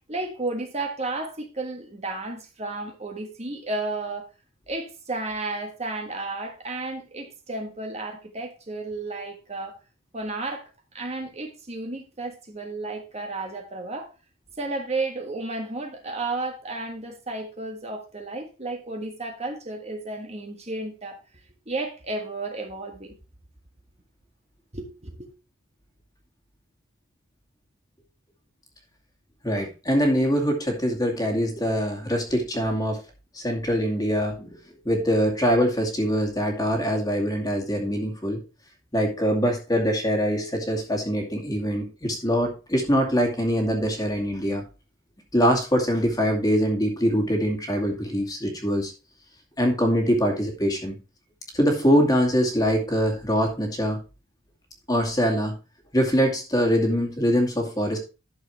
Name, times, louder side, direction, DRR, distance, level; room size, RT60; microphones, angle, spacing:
voice 1, 0.1-4.3 4.7-9.8 10.1-10.6 10.9-14.1 14.6-21.2 21.7-23.1 24.7-25.3, right 2 dB, 30° right, 1.5 m, -32 dB
voice 2, 29.4-33.0 33.3-34.6 34.8-38.4 38.9-44.6 45.3-48.9 49.6-50.9 51.5-54.0 54.9-55.5 55.9-58.0, equal, 15° left, 2.2 m, -23 dB
11.5 x 6.8 x 3.2 m
head